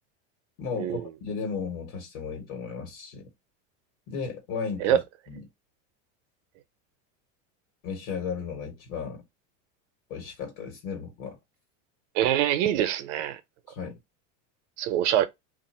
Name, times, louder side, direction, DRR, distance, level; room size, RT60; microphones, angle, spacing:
voice 1, 0.6-3.3 4.1-5.0 5.3-5.4 7.8-9.2 10.1-11.4 13.7-14.0, left 5 dB, 60° left, 1.3 m, -35 dB
voice 2, 12.1-13.4 14.8-15.2, right 11 dB, 70° right, 0.8 m, -24 dB
2.6 x 2.4 x 4.1 m
supercardioid pair, 150°, 37 cm